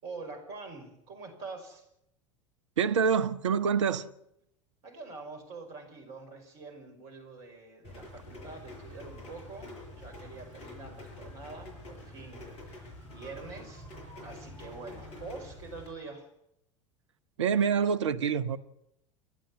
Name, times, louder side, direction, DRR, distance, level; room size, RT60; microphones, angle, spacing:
voice 1, 0.0-1.9 4.8-13.9 14.2-16.3, right 3 dB, 50° right, 5.5 m, -45 dB
voice 2, 2.8-4.1 17.4-18.6, right 6 dB, 65° right, 0.9 m, -26 dB
Rain, 7.8-15.9, left 1 dB, 40° left, 7.1 m, -46 dB
28.5 x 12.0 x 8.9 m
figure-of-eight pair, 75°, 16 cm